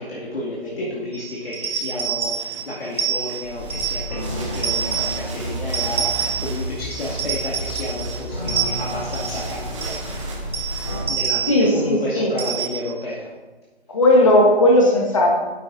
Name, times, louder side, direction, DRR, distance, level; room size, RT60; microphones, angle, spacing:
voice 1, 0.0-10.2 11.1-13.3, left 1 dB, 65° left, -5 dB, 2.3 m, -31 dB
sound 1, 1.1-4.2 4.5-5.2 5.7-6.6 6.9-8.2 8.5-9.5 9.8-10.0 10.5-11.7 12.4-13.0, right 7 dB, 55° right, 2.4 m, -27 dB
sound 2, 2.2-11.1, right 3 dB, 30° right, 1.4 m, -39 dB
sound 3, 3.4-11.1, equal, 10° left, 0.6 m, -31 dB
voice 2, 11.5-12.3 13.9-15.3, left 1 dB, 30° left, 0 dB, 1.2 m, -16 dB
10.5 x 8.8 x 2.6 m, 1.2 s
figure-of-eight pair, 160°, 32 cm